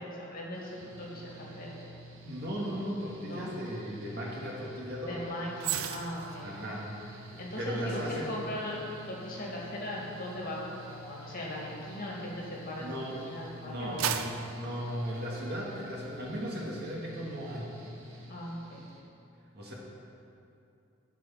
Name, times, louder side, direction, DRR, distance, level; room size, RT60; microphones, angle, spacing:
voice 1, 0.0-1.7 3.3-3.5 5.1-6.6 7.4-8.8 9.1-14.2 18.3-18.8, left 1 dB, 45° left, -3 dB, 1.9 m, -39 dB
Mechanical fan, 0.5-19.0, right 1 dB, 70° right, 1.4 m, -50 dB
voice 2, 2.2-5.3 6.4-8.3 12.8-13.2 13.5-17.7 19.5-19.7, equal, 50° right, -3 dB, 1.9 m, -37 dB
sound 1, 5.6-13.0 13.5-15.8 16.2-16.4, right 9 dB, 90° right, 0.5 m, -40 dB
13.5 x 4.7 x 5.7 m, 2.6 s
head